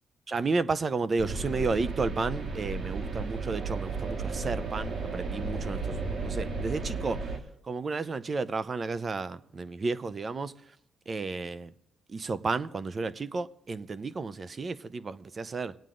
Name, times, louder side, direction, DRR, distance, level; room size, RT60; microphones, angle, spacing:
voice 1, 0.3-7.3 7.6-10.5 11.1-11.7 12.1-15.8, right 4 dB, 35° right, 0.6 m, -32 dB
sound 1, 1.2-7.4, right 3 dB, 60° right, 1.8 m, -34 dB
23.0 x 9.0 x 3.8 m
cardioid pair, 90°, 0 cm